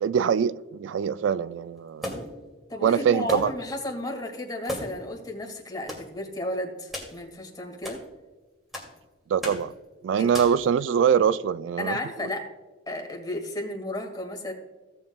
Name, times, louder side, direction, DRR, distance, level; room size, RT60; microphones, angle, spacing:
voice 1, 0.0-2.1 2.8-3.5 9.3-9.7 10.0-12.0, right 7 dB, 70° right, 0.3 m, -23 dB
sound 1, 2.0-2.4 3.3-3.7 4.0-4.1 4.6-5.1 5.9-6.1 6.9-7.2 7.8-8.0 8.7-9.0 9.4-9.7 10.3-10.6, left 1 dB, ahead, 2.4 m, -35 dB
voice 2, 2.7-8.0 10.2-10.3 11.8-12.5 12.9-14.5, left 1 dB, 20° left, 2.0 m, -33 dB
16.5 x 7.4 x 2.3 m
head